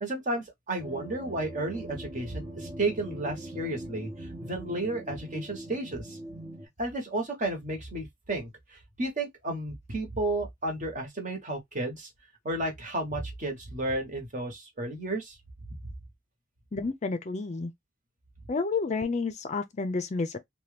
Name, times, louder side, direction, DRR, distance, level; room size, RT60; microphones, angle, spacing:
voice 1, 0.0-6.2 6.8-12.1 12.4-15.4, right 2 dB, 40° right, 1.1 m, -32 dB
sound 1, 0.8-6.7, right 1 dB, 20° right, 0.7 m, -42 dB
voice 2, 16.7-17.7 18.5-20.4, left 4 dB, 35° left, 0.4 m, -30 dB
2.9 x 2.2 x 3.2 m
head